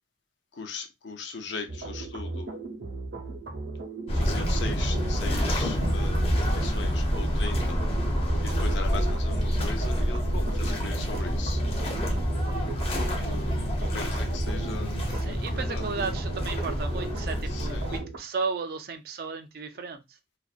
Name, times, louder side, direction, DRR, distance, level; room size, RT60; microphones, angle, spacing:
voice 1, 0.5-2.5 4.1-7.8 8.4-11.6 12.9-15.9 17.5-17.9, left 4 dB, 80° left, 0.5 m, -39 dB
sound 1, 1.7-18.2, right 3 dB, 90° right, 0.7 m, -37 dB
sound 2, 4.1-18.0, equal, 30° left, 0.5 m, -27 dB
voice 2, 15.1-20.0, right 4 dB, 55° right, 0.4 m, -34 dB
2.5 x 2.1 x 2.4 m
head